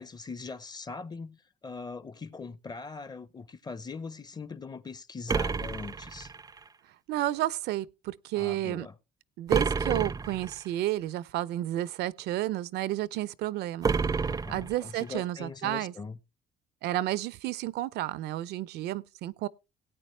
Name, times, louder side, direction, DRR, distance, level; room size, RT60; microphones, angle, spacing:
voice 1, 0.0-6.3 8.4-8.9 14.3-16.2, left 4 dB, 25° left, 0.8 m, -41 dB
sound 1, 5.3-6.7 9.5-10.7 13.8-15.2, right 5 dB, 20° right, 0.5 m, -29 dB
voice 2, 7.1-8.9 9.4-13.9 14.5-15.9 16.8-19.5, right 14 dB, 75° right, 0.6 m, -31 dB
17.5 x 9.0 x 3.2 m
cardioid pair, 110°, 17 cm